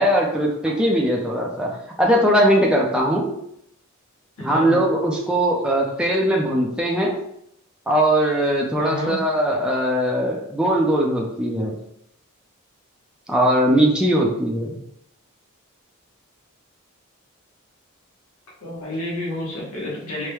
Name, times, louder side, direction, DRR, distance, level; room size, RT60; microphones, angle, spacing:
voice 1, 0.0-3.3 4.4-7.1 7.9-11.7 13.3-14.7, equal, 5° right, -2 dB, 0.5 m, -20 dB
voice 2, 4.4-4.8 8.8-9.2 18.6-20.3, left 1 dB, 85° left, -3 dB, 1.0 m, -30 dB
4.8 x 2.1 x 3.0 m, 0.75 s
head